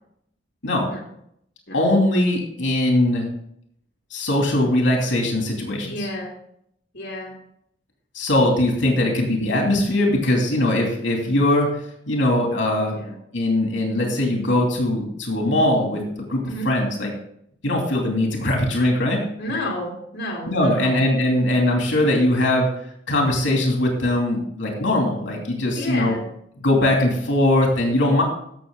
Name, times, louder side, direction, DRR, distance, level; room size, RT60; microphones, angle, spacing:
voice 1, 1.7-3.3 4.1-6.1 8.1-11.7 12.1-13.0 13.3-16.0 16.3-17.1 17.6-19.2 20.5-22.7 23.1-26.1 26.6-28.2, left 1 dB, 75° left, 0 dB, 2.7 m, -20 dB
voice 2, 5.8-6.3 6.9-7.3 12.9-13.2 16.5-16.7 19.4-21.1 25.8-26.2, left 1 dB, 60° left, -2 dB, 2.4 m, -31 dB
15.0 x 6.4 x 3.8 m, 0.71 s
head